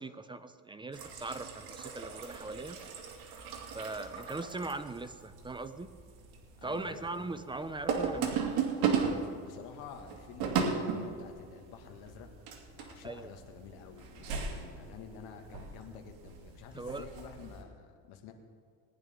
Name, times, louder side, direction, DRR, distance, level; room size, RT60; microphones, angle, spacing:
voice 1, 0.0-2.8 3.7-5.9 6.6-8.6 13.0-13.3 16.7-17.1, right 3 dB, 15° right, 11 dB, 0.5 m, -40 dB
sound 1, 0.9-17.6, right 6 dB, 65° right, 2.4 m, -37 dB
voice 2, 6.6-7.3 9.4-12.3 12.7-18.3, left 7 dB, 70° left, 4 dB, 1.9 m, -49 dB
20.0 x 11.0 x 3.7 m, 2.1 s
cardioid pair, 125°, 39 cm